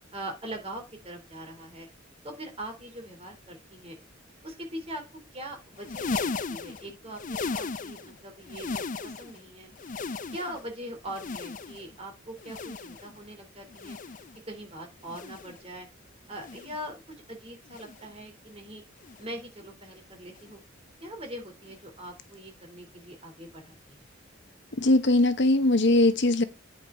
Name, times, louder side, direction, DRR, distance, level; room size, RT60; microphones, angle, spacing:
voice 1, 0.1-1.9 2.2-4.0 4.4-5.0 5.3-9.7 10.3-14.0 14.5-15.9 16.3-17.0 17.3-18.8 19.2-20.6 21.0-24.0, right 1 dB, 30° right, 3.2 m, -41 dB
sound 1, 5.7-8.2 8.4-9.4 9.7-10.7 11.1-12.0 12.4-13.2 13.7-14.4 15.0-15.6 16.3-16.9 17.7-18.1 19.0-19.3 20.3-20.5 21.7-21.8, left 4 dB, 40° left, 0.5 m, -36 dB
voice 2, 24.8-26.4, left 2 dB, 60° left, 1.0 m, -21 dB
9.6 x 5.0 x 5.5 m
head